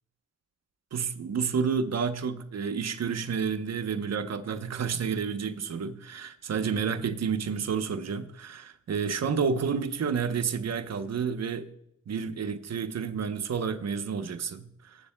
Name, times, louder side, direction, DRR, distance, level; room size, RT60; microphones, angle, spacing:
voice 1, 0.9-11.7 12.1-15.1, right 6 dB, 55° right, 0.9 m, -30 dB
18.5 x 8.1 x 2.2 m
cardioid pair, 70°, 31 cm